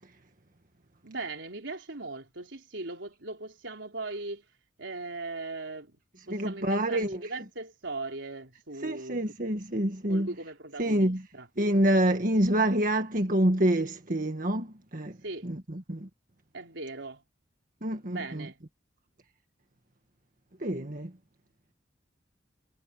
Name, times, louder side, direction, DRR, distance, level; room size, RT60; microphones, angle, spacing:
voice 1, 1.0-4.4 4.8-6.0 6.3-9.2 10.1-11.5 15.2-15.5 16.5-17.2 18.1-18.6, right 3 dB, 85° right, 3.9 m, -39 dB
voice 2, 6.3-7.2 8.8-10.3 10.8-11.3 11.6-15.2 15.4-16.1 17.8-18.5 20.6-21.1, right 1 dB, 45° right, 1.8 m, -27 dB
head